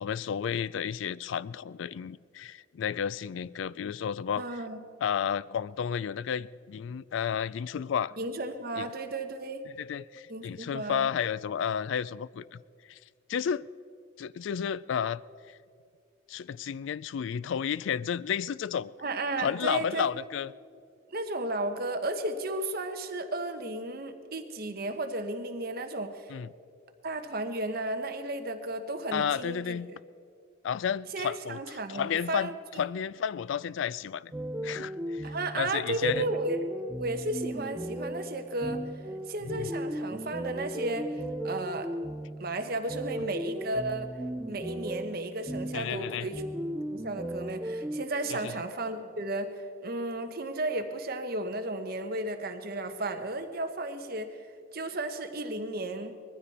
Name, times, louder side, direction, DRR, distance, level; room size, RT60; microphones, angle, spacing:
voice 1, 0.0-4.4 5.0-8.1 8.8-8.9 9.8-12.6 12.9-13.0 13.3-13.6 14.2-15.2 15.5-15.6 16.3-18.9 19.4-20.5 26.3-26.5 29.1-29.9 30.6-31.6 31.9-34.3 34.6-36.2 39.4-39.7 45.7-46.3 48.3-48.5, left 8 dB, 70° left, 0.3 m, -32 dB
voice 2, 4.4-4.8 8.2-9.6 10.3-11.1 19.0-20.1 21.1-26.3 27.0-29.8 31.1-32.8 35.2-36.6 37.0-38.8 39.3-41.9 42.4-44.1 44.5-46.4 46.9-49.6 49.8-54.4 54.7-56.2, right 2 dB, 50° right, 1.1 m, -34 dB
sound 1, 34.3-48.0, right 1 dB, 10° right, 0.3 m, -36 dB
20.5 x 14.5 x 4.3 m
head